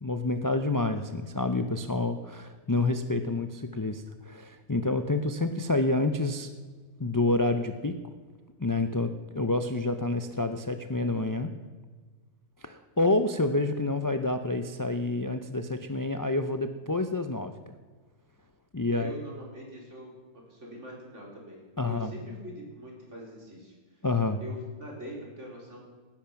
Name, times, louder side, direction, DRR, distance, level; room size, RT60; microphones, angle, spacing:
voice 1, 0.0-6.5 7.0-7.9 8.6-11.5 12.6-17.8 18.7-19.1 21.8-22.1 24.0-24.4, left 2 dB, 30° left, 8 dB, 0.3 m, -28 dB
voice 2, 18.9-23.7 24.4-25.9, equal, 50° right, -2 dB, 4.3 m, -43 dB
18.5 x 10.5 x 5.9 m, 1.4 s
omnidirectional pair, 1.6 m